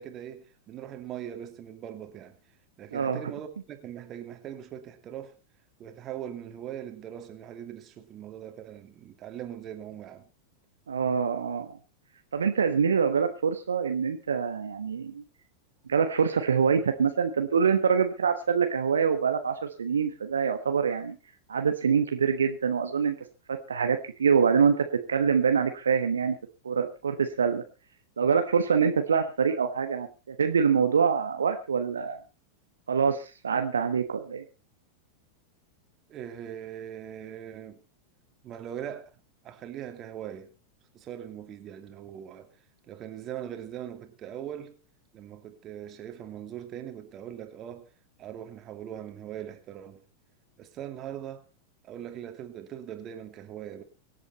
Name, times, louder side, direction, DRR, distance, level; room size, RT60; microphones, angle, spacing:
voice 1, 0.0-2.4 2.8-5.4 5.8-10.2 36.1-37.8 38.4-39.1 39.4-40.5 40.9-42.5 42.9-44.8 45.1-47.9 48.2-50.0 50.6-51.4 51.8-53.8, right 10 dB, 30° right, 2.6 m, -41 dB
voice 2, 10.9-11.8 12.3-15.2 15.9-21.2 21.5-23.1 23.5-26.4 26.6-27.6 28.2-32.2 32.9-34.4, right 6 dB, 70° right, 1.3 m, -25 dB
24.5 x 8.3 x 4.2 m
figure-of-eight pair, 90°, 0 cm